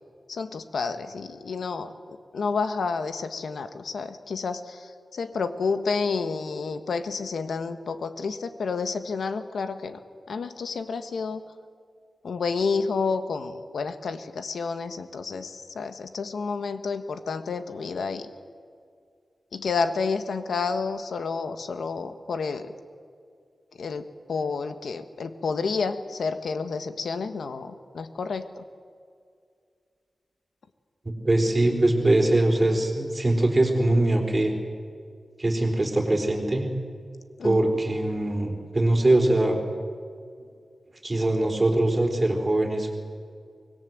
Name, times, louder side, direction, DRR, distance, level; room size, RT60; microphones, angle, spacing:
voice 1, 0.3-10.0 10.3-11.4 12.2-18.3 19.5-22.7 23.8-28.6 37.4-37.8, left 4 dB, 85° left, 9 dB, 1.4 m, -30 dB
voice 2, 31.2-34.5 35.4-36.7 37.4-39.6 41.0-42.9, right 1 dB, 25° right, 2 dB, 4.0 m, -22 dB
25.0 x 20.5 x 7.8 m, 2.2 s
wide cardioid pair, 120°, 0 cm